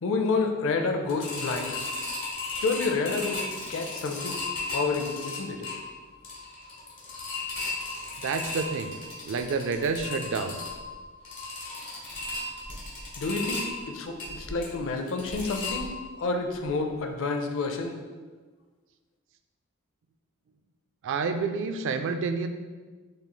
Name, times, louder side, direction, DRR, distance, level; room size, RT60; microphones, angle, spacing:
voice 1, 0.0-1.8 2.5-3.4 3.7-5.6 13.2-18.0, left 3 dB, 65° left, 5 dB, 0.5 m, -29 dB
sound 1, 1.1-16.3 16.6-16.7 17.1-17.2, left 2 dB, 35° left, 1.2 m, -36 dB
voice 2, 8.2-8.9 9.3-10.6 21.0-22.5, right 4 dB, 60° right, 8 dB, 0.3 m, -29 dB
6.5 x 3.1 x 2.2 m, 1.4 s
head